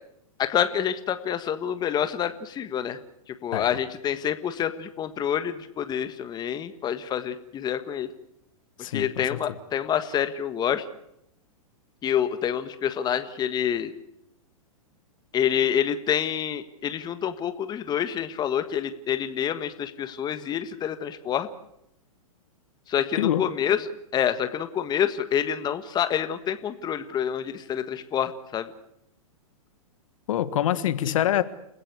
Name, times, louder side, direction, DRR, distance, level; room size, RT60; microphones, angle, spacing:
voice 1, 0.4-3.0 3.4-8.1 8.9-10.8 12.0-13.9 15.3-21.5 22.9-28.7 31.0-31.1, left 9 dB, 20° left, 10 dB, 1.5 m, -27 dB
voice 2, 8.8-9.4 23.2-23.4 30.3-31.4, left 11 dB, 65° left, 13 dB, 1.6 m, -25 dB
29.0 x 16.0 x 8.2 m, 0.80 s
hypercardioid pair, 120°, 19 cm